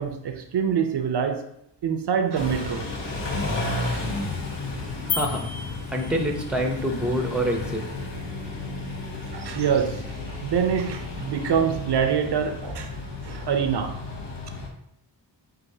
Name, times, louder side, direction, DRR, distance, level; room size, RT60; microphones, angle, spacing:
voice 1, 0.0-1.5 1.8-2.9 9.3-12.9 13.2-13.9, right 7 dB, 70° right, 0.5 m, -25 dB
Car / Idling / Accelerating revving vroom, 2.3-14.7, left 2 dB, 80° left, 1.0 m, -33 dB
sound 1, 5.1-6.6, left 5 dB, 40° left, 0.5 m, -32 dB
voice 2, 5.1-5.5 5.9-7.8, equal, ahead, 0.6 m, -26 dB
7.6 x 2.5 x 2.7 m
wide cardioid pair, 110°, 43 cm